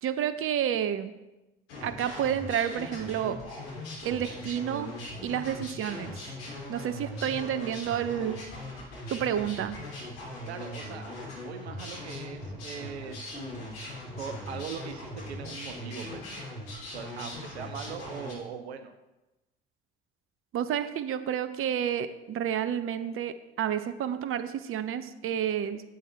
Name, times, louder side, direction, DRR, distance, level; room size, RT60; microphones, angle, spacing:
voice 1, 0.0-1.1 1.8-3.4 4.0-4.9 5.2-6.3 6.7-8.4 9.1-9.8 20.5-25.8, right 9 dB, 40° right, 12 dB, 0.7 m, -30 dB
sound 1, 1.7-18.3, left 1 dB, 70° left, 3.1 m, -40 dB
voice 2, 10.5-11.1 11.4-13.7 14.2-16.5 16.9-18.9, right 7 dB, 80° right, 8 dB, 0.7 m, -41 dB
11.0 x 7.7 x 3.4 m, 1.0 s
figure-of-eight pair, 55°, 32 cm